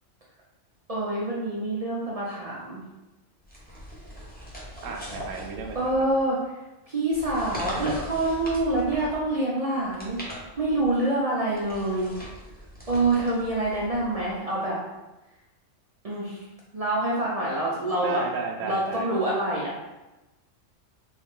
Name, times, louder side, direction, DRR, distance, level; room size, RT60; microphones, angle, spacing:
voice 1, 0.9-2.8 5.7-12.1 12.9-14.8 16.0-16.4 16.7-18.2 18.6-19.7, right 2 dB, 45° right, -5 dB, 0.5 m, -26 dB
sound 1, 3.4-6.2 7.1-9.3 9.8-11.0 11.5-14.4, equal, 10° left, 0.6 m, -39 dB
voice 2, 4.8-5.9 18.0-19.1, right 5 dB, 85° right, 2 dB, 1.0 m, -33 dB
3.6 x 2.3 x 3.6 m, 1.0 s
omnidirectional pair, 1.3 m